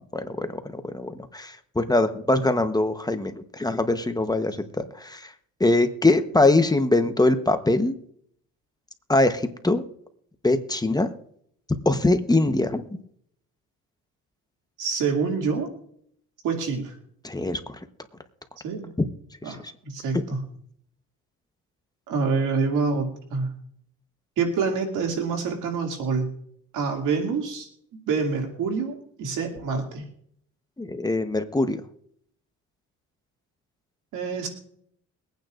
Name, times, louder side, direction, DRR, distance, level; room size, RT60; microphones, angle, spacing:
voice 1, 0.1-5.3 5.6-7.9 9.1-9.8 10.4-11.1 11.8-13.0 17.2-17.8 19.0-19.1 19.4-19.7 20.1-20.2 30.8-31.8, left 2 dB, 15° left, 8 dB, 1.0 m, -23 dB
voice 2, 14.8-15.7 16.4-16.9 18.6-18.9 19.4-20.4 22.1-23.5 24.4-26.3 26.7-27.7 28.1-30.0 34.1-34.5, right 5 dB, 90° right, 2 dB, 2.5 m, -26 dB
23.5 x 9.2 x 2.5 m, 0.66 s
cardioid pair, 90°, 30 cm